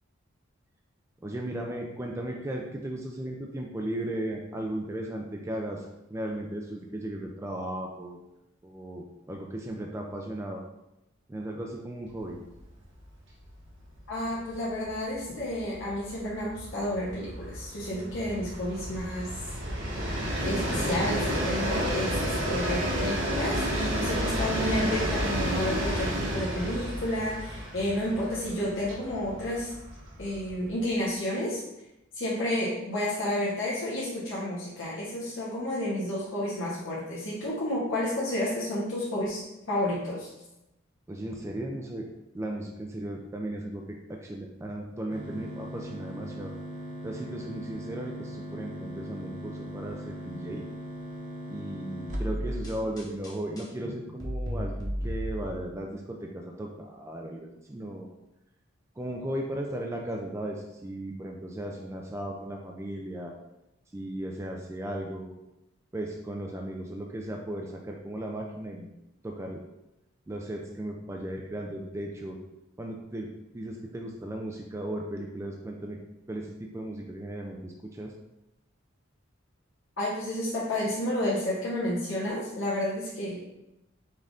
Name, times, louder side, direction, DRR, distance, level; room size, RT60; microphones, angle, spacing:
voice 1, 1.2-8.2 8.6-10.6 11.3-12.4 41.1-42.1 42.3-46.5 47.0-50.6 51.5-58.1 59.0-63.3 63.9-65.3 65.9-68.9 69.2-69.6 70.3-72.4 72.8-76.0 76.3-78.1, right 1 dB, 15° right, 1 dB, 0.3 m, -36 dB
Train, 12.5-12.7 13.0-13.1 13.4-30.8, equal, 60° right, 1.1 m, -31 dB
voice 2, 14.1-19.3 20.4-29.7 30.2-31.6 32.1-40.3 80.0-83.4, left 1 dB, 65° left, -7 dB, 1.0 m, -31 dB
sound 1, 45.1-53.2, equal, 40° right, 0.7 m, -40 dB
sound 2, 52.1-55.8, equal, 20° left, 0.8 m, -34 dB
5.3 x 2.5 x 3.6 m, 0.92 s
head